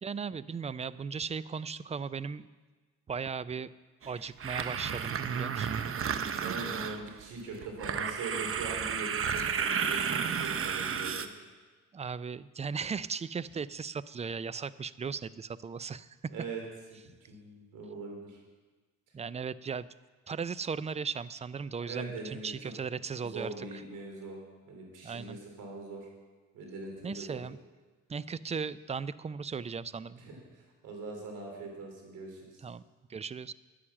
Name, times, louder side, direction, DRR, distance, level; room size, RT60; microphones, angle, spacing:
voice 1, 0.0-2.5 3.1-3.7 4.1-5.8 11.9-16.2 19.1-19.9 20.3-23.7 25.0-25.4 27.0-27.6 28.1-30.2 32.6-32.8 33.1-33.5, right 6 dB, 20° right, 18 dB, 0.4 m, -37 dB
sound 1, 4.0-7.2 7.6-11.3, right 7 dB, 45° right, 0.9 m, -32 dB
voice 2, 6.4-11.3 16.3-16.6 17.3-18.4 21.8-22.5 23.2-24.4 24.7-26.1 26.5-27.4 30.2-32.6, right 3 dB, 90° right, 1 dB, 3.5 m, -42 dB
10.0 x 9.9 x 7.3 m, 1.3 s
cardioid pair, 90°, 30 cm